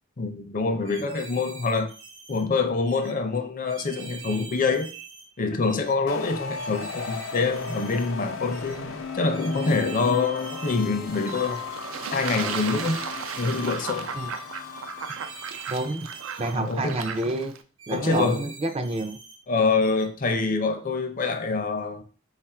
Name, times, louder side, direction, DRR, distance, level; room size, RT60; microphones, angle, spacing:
voice 1, 0.2-1.9 2.3-4.9 5.4-8.8 9.1-11.6 12.1-13.1 13.4-14.1 16.5-17.0 17.9-18.5 19.5-22.0, left 4 dB, 40° left, 0.5 m, -25 dB
sound 1, 0.8-2.4 2.9-3.1 3.7-5.3 5.6-6.0 6.5-8.1 8.5-8.8 9.3-10.9 11.3-11.6 12.1-13.7 14.2-14.4 15.0-16.6 16.9-17.3 17.8-19.4 19.8-20.1, right 5 dB, 65° right, 0.8 m, -44 dB
sound 2, 6.1-15.7, left 5 dB, 90° left, 0.6 m, -36 dB
Fowl / Bird / Water, 11.1-17.6, right 7 dB, 90° right, 0.4 m, -36 dB
voice 2, 15.7-16.1 16.4-17.5 17.9-19.2, right 2 dB, 30° right, 0.4 m, -28 dB
4.0 x 2.4 x 4.2 m
head